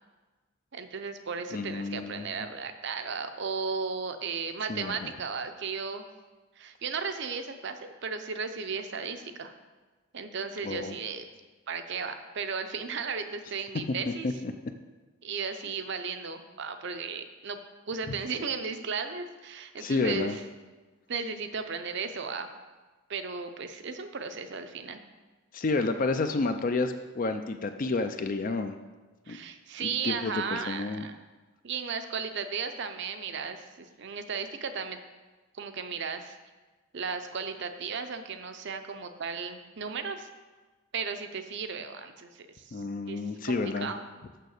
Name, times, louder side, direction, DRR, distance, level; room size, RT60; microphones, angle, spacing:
voice 1, 0.7-6.0 6.6-9.5 10.1-11.2 11.7-14.3 15.2-17.6 17.9-20.4 21.1-22.5 23.1-25.0 29.3-31.1 31.6-35.0 35.6-36.4 36.9-40.3 40.9-42.8 43.1-44.1, right 5 dB, 55° right, 8 dB, 0.6 m, -35 dB
voice 2, 1.5-2.3 4.7-5.1 10.6-10.9 14.1-14.2 14.4-14.5 19.8-20.4 25.5-28.8 29.3-29.4 29.8-31.1 42.7-43.9, left 3 dB, 40° left, 8 dB, 0.4 m, -30 dB
6.7 x 6.2 x 6.5 m, 1.3 s
head